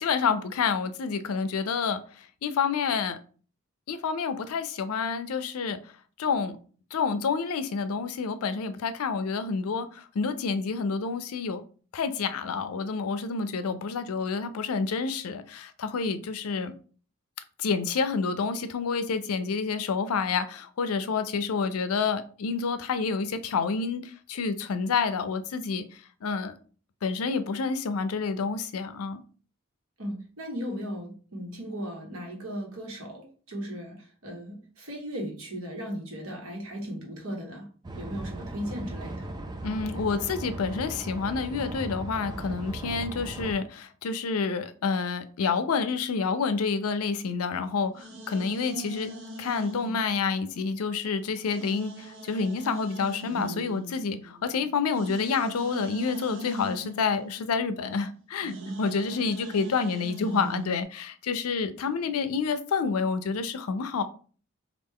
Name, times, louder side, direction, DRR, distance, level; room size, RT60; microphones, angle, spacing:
voice 1, 0.0-3.2 3.9-5.8 6.2-6.6 6.9-11.6 11.9-16.7 17.6-25.9 26.2-26.6 27.0-29.2 39.6-49.1 49.4-64.0, left 5 dB, 85° left, 0.4 m, -28 dB
voice 2, 30.0-37.7 37.9-39.3, equal, 80° right, 1.2 m, -37 dB
sound 1, 37.8-43.6, right 1 dB, 20° right, 0.3 m, -37 dB
sound 2, 47.2-51.0 51.4-60.8, right 1 dB, 55° right, 0.7 m, -41 dB
3.3 x 2.4 x 3.5 m
head